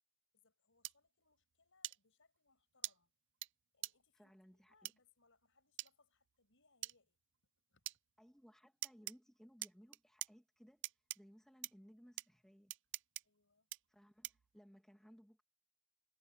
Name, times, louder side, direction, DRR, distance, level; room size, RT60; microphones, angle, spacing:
voice 1, 0.3-3.2 3.7-7.2 7.5-7.9 13.2-13.7, left 4 dB, 60° left, 7.4 m, -75 dB
sound 1, 0.8-0.9 1.8-2.0 2.8-2.9 3.4-3.5 3.8-3.9 4.8-4.9 5.8-5.9 6.8-6.9 7.9-8.0 8.8-9.1 9.6-10.3 10.8-11.2 11.6-11.7 12.2-12.3 12.7-13.2 13.7-13.8 14.2-14.5, right 17 dB, 55° right, 0.4 m, -43 dB
voice 2, 4.1-4.9 8.2-10.9 11.1-12.7 13.9-15.4, equal, ahead, 1.8 m, -63 dB
head